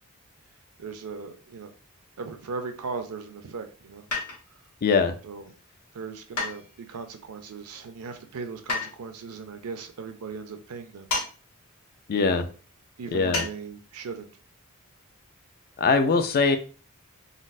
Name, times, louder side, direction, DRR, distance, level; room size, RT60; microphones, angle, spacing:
voice 1, 0.8-1.7 2.2-4.0 5.2-5.5 5.9-11.1 12.2-12.4 13.0-14.3, right 5 dB, 70° right, 7 dB, 0.5 m, -38 dB
sound 1, 4.1-4.6 6.4-7.0 8.7-8.9 11.1-11.3 11.6-11.7 13.3-13.5 13.9-14.0, left 3 dB, 75° left, 1.2 m, -30 dB
voice 2, 4.8-5.2 12.1-12.5 13.1-13.5 15.8-16.6, left 4 dB, 45° left, 8 dB, 0.4 m, -22 dB
4.0 x 2.0 x 2.5 m, 0.37 s
head